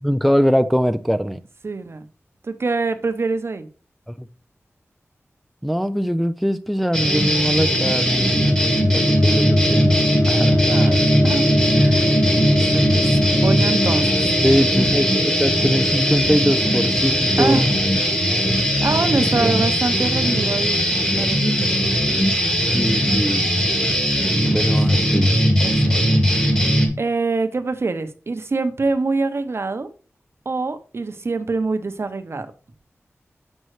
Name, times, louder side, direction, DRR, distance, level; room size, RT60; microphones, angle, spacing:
voice 1, 0.0-1.4 4.1-4.3 5.6-10.0 10.3-10.9 14.4-17.7 19.2-19.7 22.7-23.5 24.4-25.3, equal, ahead, 0.4 m, -22 dB
voice 2, 1.6-2.0 2.4-3.7 10.6-11.4 11.7-14.3 17.4-17.6 18.3-18.4 18.8-20.8 21.2-21.7 24.5-24.8 25.6-29.9 30.5-32.5, right 3 dB, 60° right, 0.8 m, -25 dB
sound 1, 6.9-26.9, equal, 15° left, 2.1 m, -19 dB
sound 2, 7.3-19.2, left 1 dB, 65° left, 1.4 m, -26 dB
7.6 x 5.4 x 3.2 m
wide cardioid pair, 80°, 5 cm